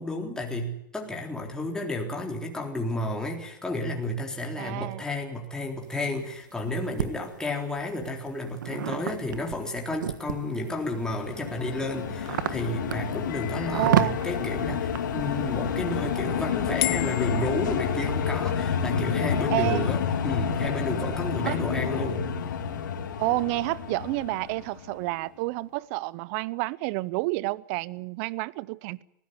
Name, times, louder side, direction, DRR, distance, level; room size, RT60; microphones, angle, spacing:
voice 1, 0.0-22.3, left 1 dB, 5° left, 3.9 m, -32 dB
voice 2, 4.6-5.0 13.7-14.1 19.5-19.9 21.4-21.6 23.2-29.0, right 21 dB, 50° right, 0.8 m, -29 dB
sound 1, 5.8-7.1 7.8-10.6 11.2-16.2, right 10 dB, 75° right, 1.6 m, -31 dB
sound 2, 10.6-25.1, left 7 dB, 75° left, 3.5 m, -29 dB
sound 3, 13.3-14.9 16.8-18.4, left 22 dB, 55° left, 1.2 m, -35 dB
20.5 x 16.5 x 9.7 m
hypercardioid pair, 110°, 10 cm